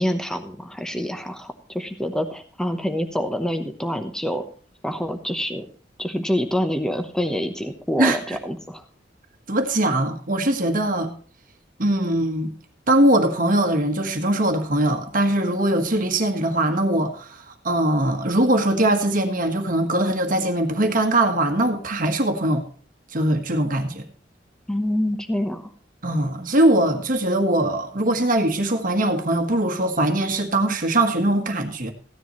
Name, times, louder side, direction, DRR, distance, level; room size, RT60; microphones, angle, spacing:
voice 1, 0.0-4.4 4.8-5.7 6.0-8.8 24.7-25.7, equal, 5° left, 7 dB, 0.9 m, -26 dB
voice 2, 8.0-8.4 9.5-11.1 11.8-12.5 12.9-22.6 23.1-24.1 26.0-31.9, right 1 dB, 50° right, 5 dB, 1.4 m, -21 dB
15.0 x 10.0 x 3.1 m, 0.43 s
head